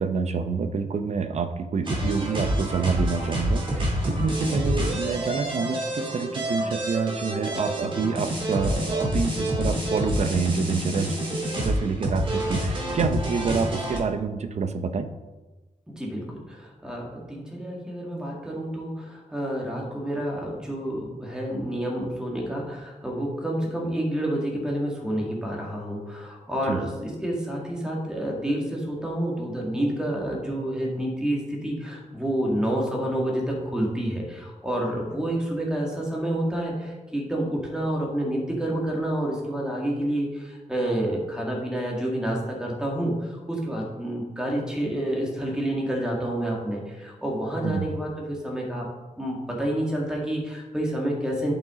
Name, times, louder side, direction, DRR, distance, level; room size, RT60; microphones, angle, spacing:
voice 1, 0.0-11.1 11.6-15.1 26.7-26.8 47.6-47.9, right 5 dB, 55° right, 9 dB, 0.6 m, -27 dB
sound 1, 1.8-14.0, equal, 40° right, 2.1 m, -27 dB
voice 2, 15.9-48.9 49.2-51.5, right 1 dB, 5° right, -2 dB, 1.9 m, -29 dB
10.5 x 5.9 x 3.7 m, 1.2 s
wide cardioid pair, 150°, 13 cm